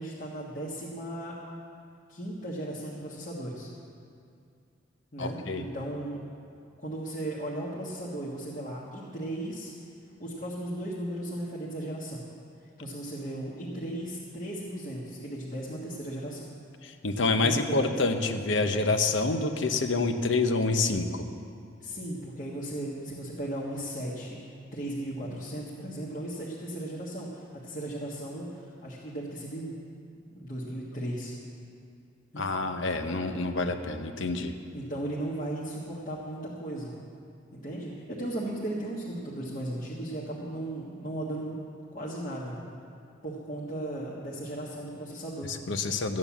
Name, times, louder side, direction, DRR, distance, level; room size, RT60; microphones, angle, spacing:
voice 1, 0.0-1.3 2.1-3.7 5.1-6.2 6.8-9.7 10.2-12.3 12.8-16.5 17.4-17.9 21.8-24.4 24.7-29.7 30.3-31.3 32.3-32.4 34.7-36.9 37.5-41.5 41.9-42.5 43.2-45.5, right 1 dB, 40° left, -7 dB, 1.7 m, -36 dB
voice 2, 5.2-5.7 16.8-21.2 32.4-34.5 45.5-46.2, left 3 dB, 65° left, 7 dB, 0.9 m, -27 dB
14.0 x 9.6 x 7.2 m, 2.4 s
head